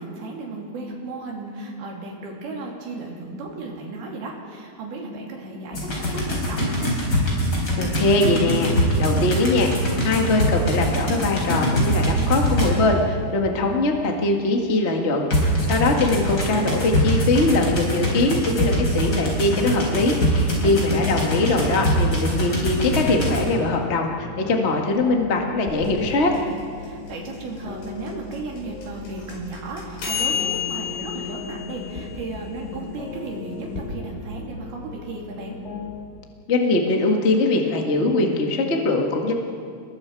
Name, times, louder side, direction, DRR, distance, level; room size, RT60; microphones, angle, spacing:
voice 1, 0.0-7.0 20.4-20.9 26.8-35.6, right 2 dB, 65° right, -1 dB, 4.8 m, -34 dB
sound 1, 5.7-13.0 15.3-23.4, equal, 25° left, 4.7 m, -23 dB
voice 2, 7.8-8.7 9.0-9.7 10.0-26.3 36.5-39.3, left 2 dB, 65° left, 1 dB, 0.6 m, -22 dB
sound 2, 24.1-36.1, left 6 dB, 50° left, 2.4 m, -39 dB
sound 3, 25.7-33.8, left 7 dB, 90° left, 6.9 m, -32 dB
29.5 x 20.5 x 4.8 m, 2.2 s
omnidirectional pair, 4.7 m